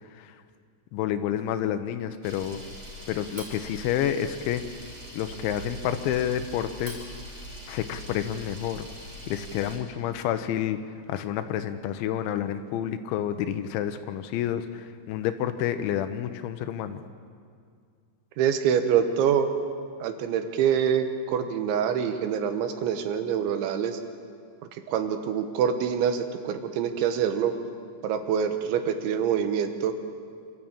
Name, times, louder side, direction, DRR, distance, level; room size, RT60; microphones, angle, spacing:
voice 1, 0.9-2.6 3.1-4.6 5.1-7.0 7.7-8.9 9.3-10.8 11.1-17.0, left 10 dB, 85° left, 9 dB, 3.2 m, -29 dB
Camera, 2.2-9.8, equal, 20° right, 4.4 m, -42 dB
voice 2, 18.4-19.5 20.0-24.0 24.9-27.5 28.0-29.9, right 8 dB, 85° right, 8 dB, 3.6 m, -25 dB
25.5 x 13.0 x 8.8 m, 2.2 s
omnidirectional pair, 5.2 m